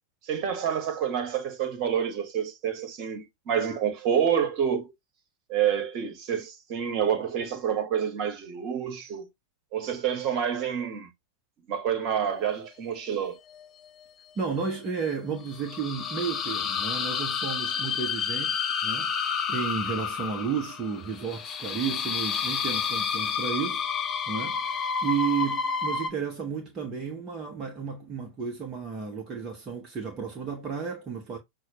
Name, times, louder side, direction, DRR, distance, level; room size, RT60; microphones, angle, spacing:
voice 1, 0.2-4.9 5.5-9.3 9.7-11.1 11.7-13.4, right 8 dB, 40° right, 1.4 m, -28 dB
sound 1, 13.1-14.0 14.9-26.1, left 6 dB, 25° left, 0.6 m, -30 dB
voice 2, 14.4-19.1 19.5-23.9 24.3-31.4, right 6 dB, 25° right, 1.0 m, -32 dB
6.1 x 2.3 x 2.9 m
figure-of-eight pair, 90°, 0 cm